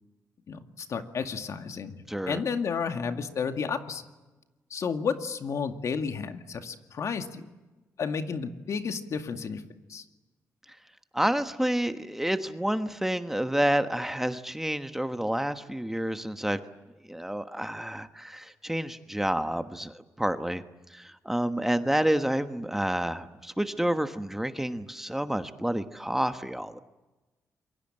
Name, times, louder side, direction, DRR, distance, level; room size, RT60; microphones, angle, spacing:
voice 1, 0.5-4.0 4.7-7.5 8.0-9.6 9.9-10.0, left 6 dB, 60° left, 7 dB, 2.1 m, -32 dB
voice 2, 2.1-2.4 11.1-16.6 17.1-20.6 20.9-26.8, right 1 dB, 5° right, 9 dB, 1.3 m, -29 dB
27.5 x 23.0 x 9.0 m, 1.1 s
cardioid pair, 95°, 6 cm